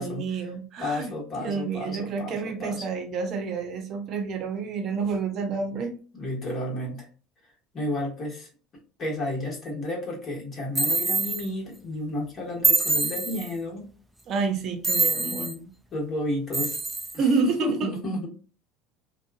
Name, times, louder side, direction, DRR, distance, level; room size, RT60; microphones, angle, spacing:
voice 1, 0.0-6.0 14.3-15.5 17.2-17.9, right 4 dB, 50° right, 6 dB, 0.7 m, -29 dB
voice 2, 0.8-2.8 6.1-7.1 7.7-8.5 9.0-13.9 15.3-16.8 17.1-18.3, left 1 dB, 40° left, -2 dB, 1.3 m, -32 dB
sound 1, 10.7-11.5 12.6-13.5 14.8-15.5 16.5-17.2, right 3 dB, 10° right, 0.4 m, -25 dB
2.9 x 2.2 x 2.3 m, 0.38 s
supercardioid pair, 100°, 0 cm